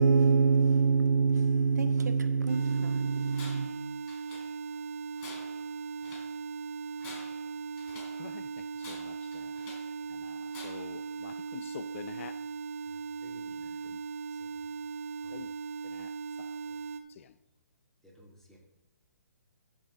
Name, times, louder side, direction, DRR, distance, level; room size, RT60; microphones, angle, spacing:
voice 1, 0.0-3.7, right 5 dB, 80° right, 0.9 m, -25 dB
sound 1, 2.5-17.0, right 4 dB, 50° right, 1.1 m, -39 dB
Tools, 3.3-3.8 4.1-4.8 5.2-6.3 6.9-8.2 8.8-9.9 10.5-11.0, left 3 dB, 25° left, 3.6 m, -49 dB
voice 2, 8.9-9.4 10.1-10.4 10.6-12.4 15.3-15.5 15.8-16.1 17.2-17.3, left 9 dB, 50° left, 0.5 m, -46 dB
voice 3, 12.9-13.9 14.3-14.7 15.2-15.3 16.6-16.8 18.0-18.6, equal, 5° left, 2.6 m, -58 dB
14.0 x 6.6 x 3.7 m
hypercardioid pair, 135°, 9 cm